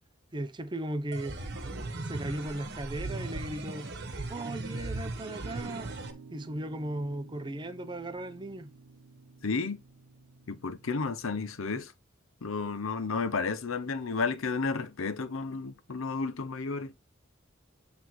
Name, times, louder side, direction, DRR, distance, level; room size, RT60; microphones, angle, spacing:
voice 1, 0.3-1.3 2.1-3.9 4.3-5.9 6.3-8.7, right 1 dB, 20° right, 0.7 m, -36 dB
sound 1, 1.1-6.1, right 2 dB, 55° right, 1.3 m, -38 dB
sound 2, 5.4-11.8, right 4 dB, 80° right, 1.0 m, -52 dB
voice 2, 9.4-9.8 10.5-11.9 12.4-16.9, left 4 dB, 75° left, 0.8 m, -32 dB
8.0 x 3.5 x 4.6 m
head